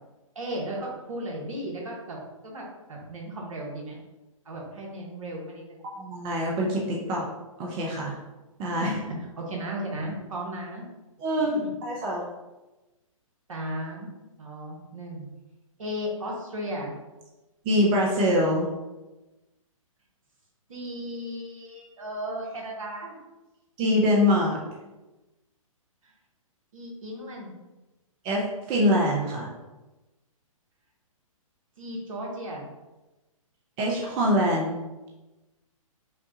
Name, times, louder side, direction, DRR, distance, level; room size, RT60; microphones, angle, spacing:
voice 1, 0.3-2.2 2.4-4.0 4.4-5.8 8.8-10.8 11.4-11.7 13.5-14.1 14.4-15.3 15.8-16.9 20.7-23.2 26.0-26.1 26.7-27.5 31.8-32.7, equal, 70° right, -1 dB, 1.2 m, -35 dB
voice 2, 5.8-7.3 7.6-8.2 8.6-8.9 11.2-12.3 17.6-18.7 23.8-24.6 28.2-28.4 28.7-29.5 33.8-34.7, equal, 25° right, -2 dB, 0.7 m, -24 dB
5.7 x 2.3 x 2.8 m, 1.1 s
figure-of-eight pair, 125°, 18 cm